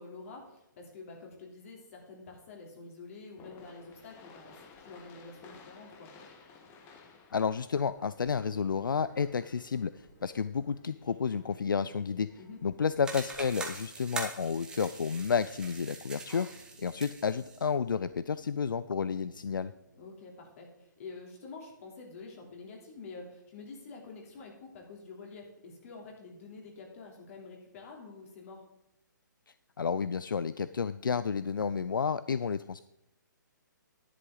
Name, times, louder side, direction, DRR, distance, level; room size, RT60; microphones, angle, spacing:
voice 1, 0.0-4.5 4.8-6.1 12.4-12.6 20.0-28.6, left 3 dB, 45° left, 0 dB, 3.2 m, -48 dB
sound 1, 3.3-13.9, left 4 dB, 20° left, 1.2 m, -57 dB
voice 2, 7.3-9.9 10.2-12.3 12.6-16.5 16.8-19.7 29.8-32.8, left 6 dB, 80° left, 14 dB, 0.4 m, -31 dB
sound 2, 8.4-20.4, right 4 dB, 60° right, 2.0 m, -58 dB
sound 3, 13.0-17.6, right 3 dB, 5° right, 1.2 m, -42 dB
11.0 x 9.9 x 3.9 m, 0.87 s
figure-of-eight pair, 140°, 11 cm